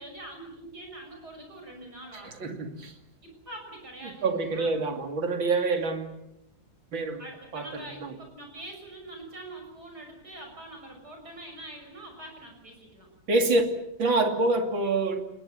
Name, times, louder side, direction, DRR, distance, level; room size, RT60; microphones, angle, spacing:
voice 1, 0.0-2.5 3.2-4.7 7.2-13.1, right 1 dB, 55° right, 6.7 m, -44 dB
voice 2, 2.2-2.9 4.2-6.2 6.9-7.2 7.5-8.1 13.3-13.7 14.0-15.2, right 3 dB, 90° right, 3.4 m, -26 dB
29.5 x 21.0 x 7.7 m
omnidirectional pair, 2.1 m